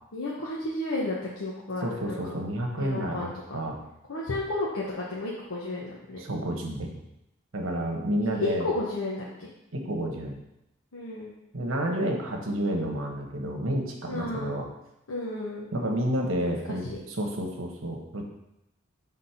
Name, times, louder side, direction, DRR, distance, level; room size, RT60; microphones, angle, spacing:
voice 1, 0.1-2.4 2.8-3.5 4.1-6.2 8.4-9.5 10.9-11.3 14.1-14.5 15.1-15.7 16.9-17.0, left 2 dB, 90° left, -5 dB, 1.1 m, -32 dB
voice 2, 1.8-3.8 6.2-7.0 7.5-8.7 9.7-10.4 11.5-14.7 15.7-18.2, right 1 dB, 75° right, 1 dB, 1.2 m, -30 dB
6.3 x 3.7 x 5.8 m, 0.85 s
head